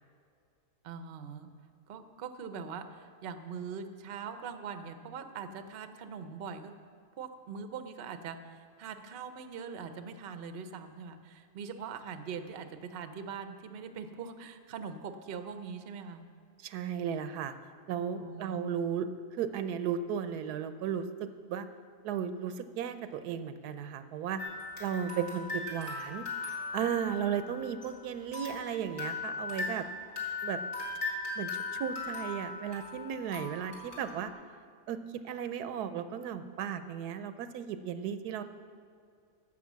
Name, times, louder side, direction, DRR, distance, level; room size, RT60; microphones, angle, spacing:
voice 1, 0.8-1.5 1.9-6.7 7.2-16.2 18.1-18.6, right 6 dB, 55° right, 9 dB, 0.7 m, -42 dB
voice 2, 16.6-17.5 17.9-19.1 19.4-21.7 22.0-24.4 24.8-26.3 26.7-29.8 30.4-30.6 31.4-31.5 31.8-34.3 34.9-38.4, right 8 dB, 85° right, 11 dB, 1.2 m, -35 dB
sound 1, 24.4-27.9 28.3-34.3, left 3 dB, 45° left, 2.3 m, -38 dB
11.0 x 6.7 x 7.3 m, 2.3 s
omnidirectional pair, 1.7 m